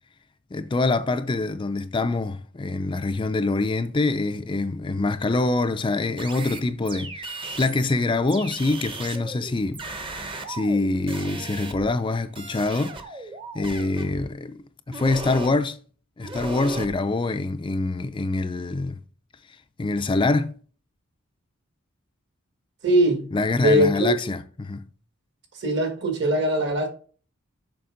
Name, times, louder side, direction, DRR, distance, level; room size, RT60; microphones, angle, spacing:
voice 1, 0.5-9.8 10.5-13.3 13.5-15.8 16.2-19.0 19.8-20.5 23.3-24.9, left 3 dB, 25° left, 0.4 m, -25 dB
sound 1, 6.2-7.9 8.3-12.1 12.4-14.3 14.9-15.6 16.2-16.9, right 2 dB, 25° right, 0.8 m, -36 dB
voice 2, 22.8-23.2 23.6-24.1 25.6-26.9, right 1 dB, 55° right, 1.7 m, -21 dB
6.9 x 5.3 x 3.8 m
head